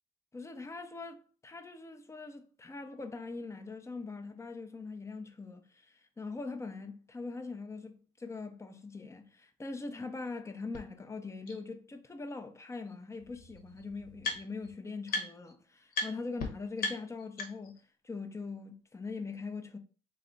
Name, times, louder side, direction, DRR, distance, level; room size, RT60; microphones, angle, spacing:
voice 1, 0.3-17.8 18.0-19.8, left 3 dB, 15° left, 0.6 m, -42 dB
sound 1, 10.7-10.8 11.5-11.6 12.8-12.9 13.2-14.7 15.1-15.5 15.9-16.1 16.4-16.5 16.8-17.8, left 3 dB, 65° left, 1.2 m, -37 dB
3.4 x 3.3 x 3.9 m
cardioid pair, 110°, 17 cm